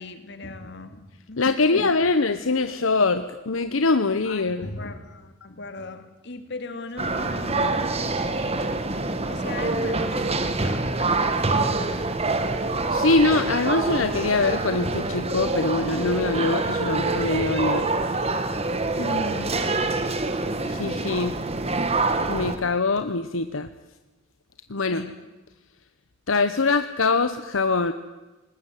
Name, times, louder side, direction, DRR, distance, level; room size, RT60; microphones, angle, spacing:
voice 1, 0.0-1.9 4.2-7.8 9.3-12.1 19.0-19.6 24.9-25.1, left 2 dB, 60° left, 9 dB, 2.4 m, -38 dB
voice 2, 1.4-4.7 12.9-17.9 20.7-21.4 22.3-23.7 24.7-25.1 26.3-27.9, left 3 dB, 80° left, 10 dB, 1.0 m, -23 dB
sound 1, 7.0-22.6, right 3 dB, 30° right, 1.8 m, -26 dB
21.0 x 19.0 x 9.3 m, 1.1 s
head